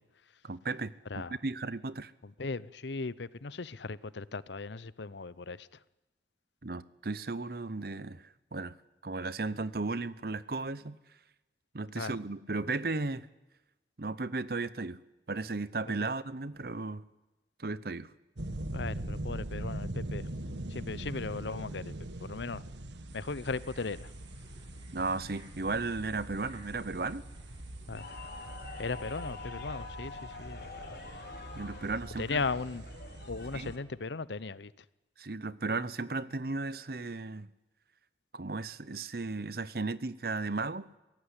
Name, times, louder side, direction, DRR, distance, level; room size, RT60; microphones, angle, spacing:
voice 1, 0.4-2.1 6.6-8.2 8.5-8.8 9.0-11.0 11.7-13.3 14.0-15.0 15.3-17.1 17.6-18.1 24.9-27.2 31.6-32.4 33.5-33.7 35.2-37.5 38.3-40.9, right 3 dB, 55° right, 0.8 m, -35 dB
voice 2, 2.4-5.7 12.0-12.1 18.7-20.2 20.7-21.9 22.2-22.6 23.1-24.1 27.9-28.0 28.8-31.0 32.2-32.8 33.3-34.7, left 4 dB, 80° left, 0.8 m, -37 dB
sound 1, 18.4-33.8, right 1 dB, 85° right, 1.6 m, -42 dB
sound 2, 23.1-29.3, right 2 dB, 25° right, 5.3 m, -58 dB
sound 3, 27.9-33.8, left 3 dB, 55° left, 4.2 m, -46 dB
23.0 x 17.0 x 9.9 m
head